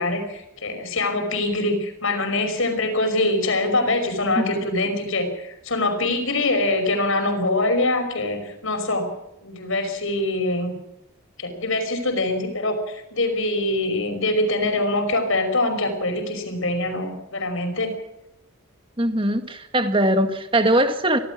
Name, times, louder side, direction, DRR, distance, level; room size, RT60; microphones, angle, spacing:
voice 1, 0.0-9.1 9.4-10.7 11.4-17.9, left 2 dB, 70° left, 7 dB, 5.4 m, -24 dB
voice 2, 4.4-4.8 19.0-21.2, right 1 dB, 25° right, 7 dB, 1.9 m, -21 dB
25.5 x 17.0 x 6.2 m, 0.84 s
head